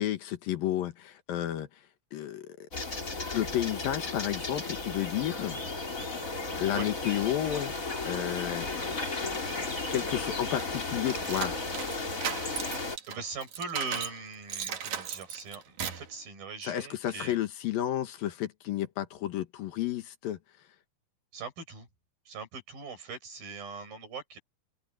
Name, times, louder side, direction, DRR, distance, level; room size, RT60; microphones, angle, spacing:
voice 1, 0.0-1.7 2.1-2.5 3.3-5.6 6.6-7.7 8.1-8.9 9.6-11.6 16.6-20.4, left 12 dB, 75° left, 3.1 m, -31 dB
sound 1, 2.7-13.0, left 3 dB, 20° left, 3.4 m, -34 dB
voice 2, 6.7-7.7 12.4-17.3 21.3-21.9 22.3-24.4, right 4 dB, 75° right, 8.5 m, -41 dB
sound 2, 10.6-14.2 14.5-16.1, right 8 dB, 55° right, 2.9 m, -36 dB
open air
omnidirectional pair, 4.2 m